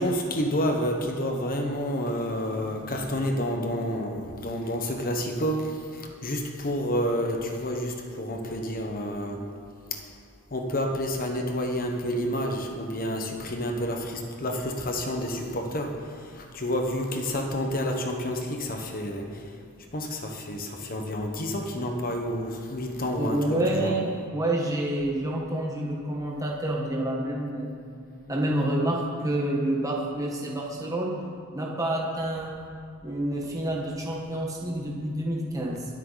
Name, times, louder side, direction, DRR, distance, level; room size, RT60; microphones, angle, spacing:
voice 1, 0.0-9.4 9.9-10.0 10.5-19.4 19.9-23.9, equal, 40° left, 2 dB, 1.3 m, -29 dB
voice 2, 23.2-27.7 28.3-31.1 31.5-32.5 33.0-35.9, right 1 dB, 15° right, -2 dB, 1.4 m, -28 dB
22.0 x 8.2 x 4.1 m, 2.4 s
head